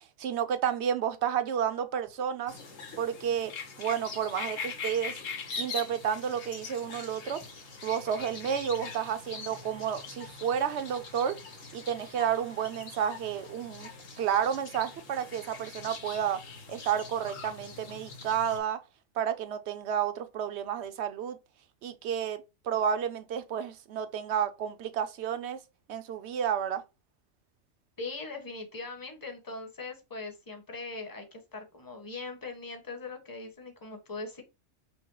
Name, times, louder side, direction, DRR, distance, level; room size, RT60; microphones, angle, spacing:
voice 1, 0.2-2.5 3.0-3.5 3.8-5.1 5.6-7.4 7.8-11.4 11.7-13.9 14.2-16.4 16.7-18.8 19.2-21.4 21.8-25.6 25.9-26.8, right 8 dB, 65° right, 0.9 m, -31 dB
sound 1, 2.5-18.6, left 4 dB, 90° left, 1.4 m, -42 dB
voice 2, 28.0-34.4, left 3 dB, 20° left, 1.0 m, -40 dB
5.4 x 2.1 x 4.6 m
omnidirectional pair, 1.3 m